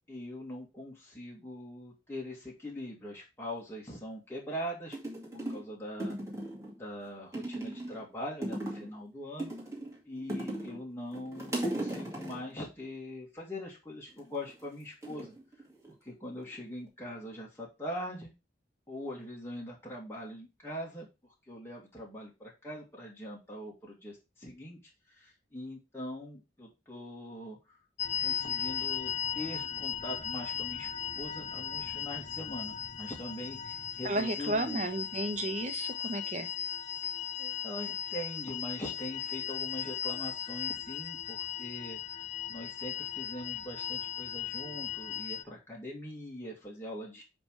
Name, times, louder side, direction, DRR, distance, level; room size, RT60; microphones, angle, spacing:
voice 1, 0.1-5.0 5.3-6.1 6.7-9.5 10.0-15.3 16.0-18.3 18.9-24.8 25.1-27.8 28.2-30.9 31.2-34.9 37.1-47.2, equal, 15° left, -4 dB, 2.1 m, -42 dB
sound 1, 4.5-4.6 4.9-5.7 6.0-6.8 7.3-8.0 8.4-9.0 9.4-10.8 11.1-12.5 14.1-14.5 15.0-16.1 16.4-16.9, right 1 dB, 15° right, 2.1 m, -37 dB
sound 2, 28.0-45.4, left 9 dB, 40° left, 0.6 m, -37 dB
voice 2, 34.0-36.5, right 2 dB, 40° right, 8 dB, 1.1 m, -33 dB
9.7 x 3.5 x 4.8 m, 0.26 s
head